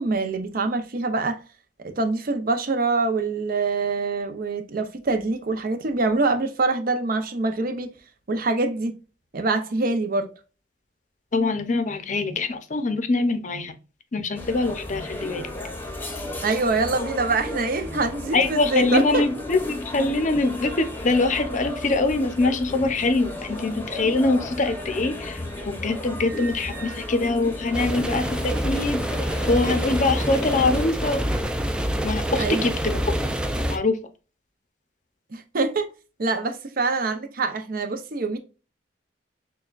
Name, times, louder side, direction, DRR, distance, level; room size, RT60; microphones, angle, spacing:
voice 1, 0.0-1.4 1.8-7.9 8.3-9.0 9.3-10.3 16.4-19.2 32.4-32.7 35.3-35.9 36.2-38.4, right 3 dB, 55° right, 0.6 m, -25 dB
voice 2, 11.3-13.8 14.1-15.5 18.3-31.3 32.0-33.0 33.7-34.0, left 3 dB, 45° left, 0.6 m, -24 dB
sound 1, 14.4-30.9, left 1 dB, 10° left, 0.8 m, -34 dB
sound 2, 27.7-33.8, equal, 5° right, 0.4 m, -26 dB
6.7 x 2.2 x 2.4 m
head